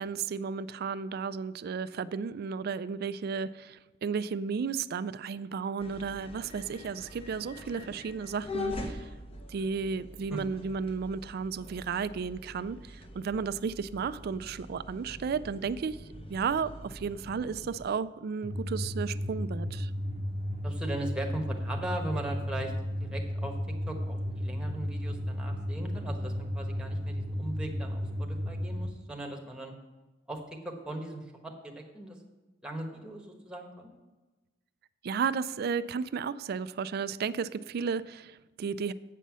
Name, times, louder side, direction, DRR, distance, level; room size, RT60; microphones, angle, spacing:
voice 1, 0.0-9.1 9.5-16.0 16.3-19.9 35.0-38.9, right 5 dB, 55° right, 15 dB, 0.3 m, -33 dB
sound 1, 5.8-17.9, left 2 dB, 30° left, 0.9 m, -44 dB
sound 2, 18.4-28.9, equal, 30° right, 0.7 m, -34 dB
voice 2, 20.6-22.7 23.0-23.5 23.9-29.7 30.3-32.2 32.6-33.9, right 1 dB, 5° right, 2 dB, 1.2 m, -39 dB
8.3 x 5.5 x 7.4 m, 1.2 s
head